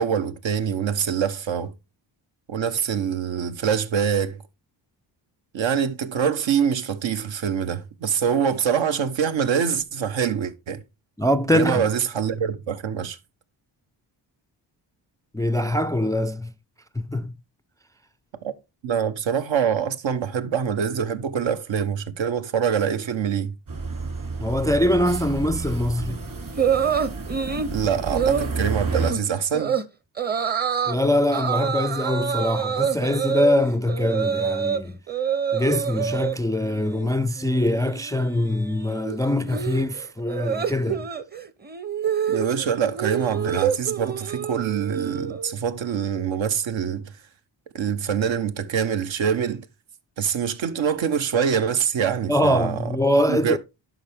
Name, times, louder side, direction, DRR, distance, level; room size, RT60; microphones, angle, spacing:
voice 1, 0.0-1.7 2.5-4.4 5.5-10.8 11.5-13.2 18.4-18.5 18.8-23.5 27.7-29.8 42.3-47.1 47.7-49.7 50.2-52.8 53.3-53.6, right 7 dB, 75° right, 1.1 m, -24 dB
voice 2, 11.2-11.8 15.3-16.5 17.0-17.3 24.4-26.2 30.9-35.0 35.5-41.1 52.3-53.6, left 1 dB, 10° left, 0.3 m, -23 dB
sound 1, 23.7-29.1, right 4 dB, 45° right, 2.8 m, -30 dB
sound 2, 26.6-27.7 28.1-28.5 28.9-29.2 29.5-29.8 30.2-31.0 31.3-34.8 35.1-36.4 36.7-37.1 37.4-45.5, right 7 dB, 20° right, 0.8 m, -27 dB
11.5 x 4.9 x 3.5 m
cardioid pair, 85°, 46 cm